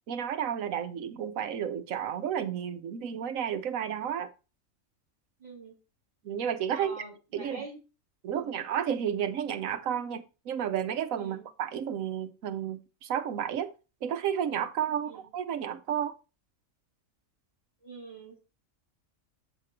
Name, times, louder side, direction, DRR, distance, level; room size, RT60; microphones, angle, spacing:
voice 1, 0.1-4.3 6.2-7.0 7.3-7.6 8.2-13.7 14.0-16.1, right 9 dB, 80° right, 1.2 m, -32 dB
voice 2, 5.4-5.8 6.7-7.8 8.3-8.6 11.2-11.4 15.0-15.2 17.8-18.4, right 3 dB, 30° right, 2.7 m, -45 dB
7.5 x 5.1 x 4.3 m
omnidirectional pair, 1.4 m